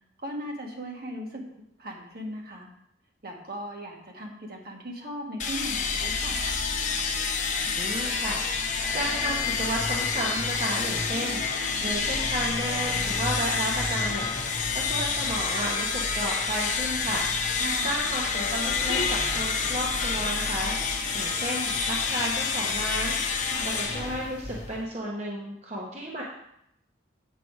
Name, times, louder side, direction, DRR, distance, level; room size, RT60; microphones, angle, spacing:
voice 1, 0.2-1.4 1.8-2.7 3.2-6.4 17.5-18.0 23.4-23.7, equal, 50° right, 0 dB, 1.6 m, -38 dB
sound 1, 5.4-24.9, left 5 dB, 40° left, 0.9 m, -28 dB
voice 2, 7.8-14.3 14.7-17.3 17.8-23.2 23.6-26.2, right 1 dB, 35° right, -4 dB, 1.2 m, -33 dB
8.1 x 6.8 x 4.7 m, 0.77 s
head